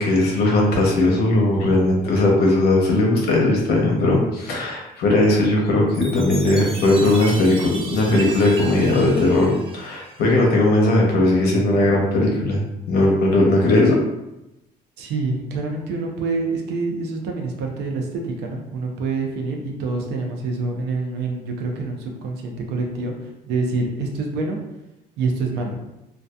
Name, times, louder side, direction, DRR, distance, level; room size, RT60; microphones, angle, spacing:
voice 1, 0.0-12.6 12.9-14.0, left 2 dB, 70° left, -1 dB, 0.7 m, -18 dB
Chime, 5.9-10.5, right 3 dB, 35° right, 0.5 m, -35 dB
voice 2, 15.0-24.6 25.2-25.8, right 3 dB, 80° right, 1 dB, 0.6 m, -26 dB
2.6 x 2.3 x 2.2 m, 0.93 s
cardioid pair, 110°, 17 cm